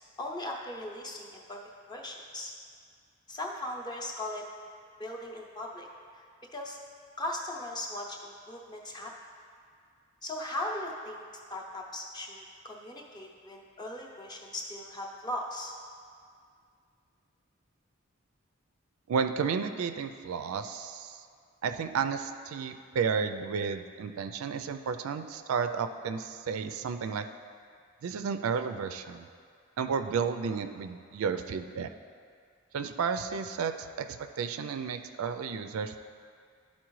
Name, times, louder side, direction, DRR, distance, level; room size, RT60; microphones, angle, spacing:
voice 1, 0.2-1.6 1.9-2.5 3.3-4.4 5.0-5.9 6.1-6.2 6.5-6.8 7.2-8.2 8.5-9.1 10.2-11.2 11.5-15.7, left 1 dB, 20° left, -1 dB, 0.6 m, -38 dB
voice 2, 19.1-21.2 21.6-27.3 28.0-29.3 29.8-31.9 32.7-34.1 34.4-36.0, right 6 dB, 80° right, 8 dB, 0.4 m, -32 dB
12.0 x 4.3 x 3.1 m, 2.2 s
head